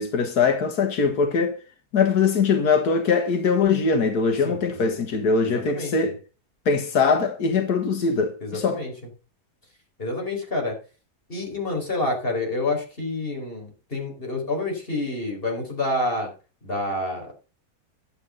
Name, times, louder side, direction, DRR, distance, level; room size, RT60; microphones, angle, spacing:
voice 1, 0.0-1.6 1.9-6.2 6.7-8.8, left 5 dB, 90° left, 2.0 m, -22 dB
voice 2, 4.4-4.9 5.4-6.1 8.4-8.9 10.0-10.7 11.3-16.3 16.6-17.3, left 2 dB, 35° left, 4.8 m, -28 dB
11.5 x 8.3 x 5.2 m
omnidirectional pair, 1.6 m